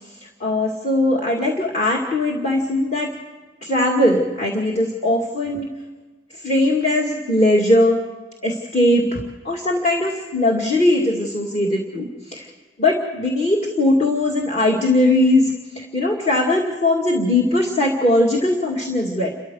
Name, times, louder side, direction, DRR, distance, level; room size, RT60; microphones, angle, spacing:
voice 1, 0.2-3.1 3.6-5.7 6.4-8.0 8.4-12.5 12.8-19.3, left 1 dB, 35° left, 0 dB, 2.3 m, -19 dB
29.5 x 14.0 x 6.4 m, 1.3 s
head